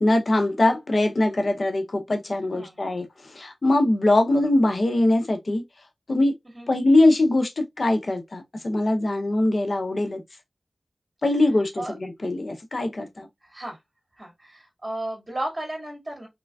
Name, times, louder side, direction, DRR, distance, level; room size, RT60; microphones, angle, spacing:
voice 1, 0.0-5.6 6.1-6.3 6.7-10.2 11.2-13.3, left 2 dB, 55° left, 0.7 m, -22 dB
voice 2, 13.4-13.8 14.2-16.3, right 1 dB, 30° right, 2.0 m, -34 dB
3.7 x 3.2 x 2.3 m
wide cardioid pair, 75°, 0 cm